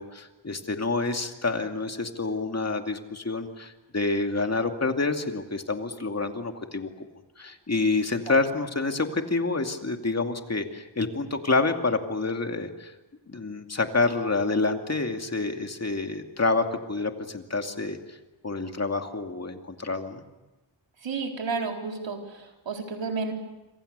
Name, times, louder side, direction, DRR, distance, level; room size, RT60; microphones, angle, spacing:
voice 1, 0.0-6.9 7.4-12.9 13.3-18.2 18.4-20.2, left 3 dB, 35° left, 5 dB, 2.5 m, -28 dB
voice 2, 21.0-23.3, right 4 dB, 80° right, 2 dB, 4.3 m, -31 dB
27.5 x 26.0 x 6.8 m, 1.1 s
wide cardioid pair, 95°, 44 cm